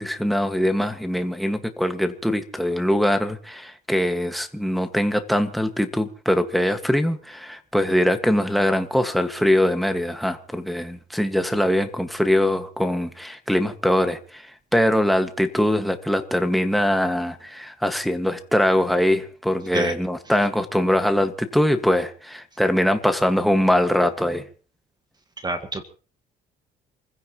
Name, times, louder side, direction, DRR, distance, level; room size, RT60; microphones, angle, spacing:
voice 1, 0.0-24.5, left 1 dB, ahead, 1.9 m, -22 dB
voice 2, 25.4-25.8, right 3 dB, 25° right, 1.7 m, -27 dB
28.0 x 16.0 x 3.1 m
cardioid pair, 110°, 17 cm